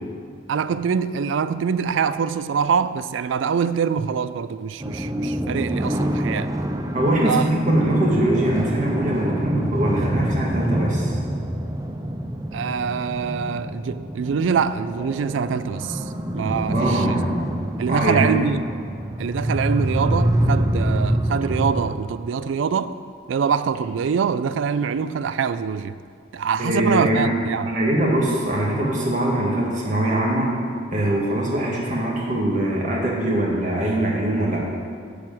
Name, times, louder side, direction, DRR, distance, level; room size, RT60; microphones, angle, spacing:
voice 1, 0.5-6.5 7.2-7.4 12.5-16.0 16.3-17.2 17.8-18.7 19.2-22.9 23.3-26.0 26.3-27.7, right 6 dB, 85° right, 0.4 m, -24 dB
sound 1, 4.8-21.9, right 1 dB, 15° right, 0.5 m, -26 dB
voice 2, 6.9-11.1 16.7-17.3 17.9-18.5 26.6-27.3 27.6-30.5 30.9-34.6, right 1 dB, 40° right, 1.8 m, -22 dB
10.0 x 4.7 x 7.6 m
head